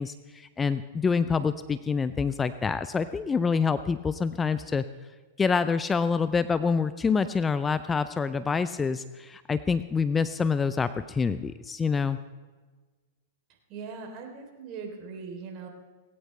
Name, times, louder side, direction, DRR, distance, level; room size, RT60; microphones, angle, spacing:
voice 1, 0.0-4.8 5.4-12.2, left 5 dB, 15° left, 13 dB, 0.5 m, -26 dB
voice 2, 13.7-15.7, right 5 dB, 40° right, 3 dB, 3.4 m, -40 dB
19.0 x 17.5 x 3.3 m, 1.3 s
figure-of-eight pair, 100°, 0 cm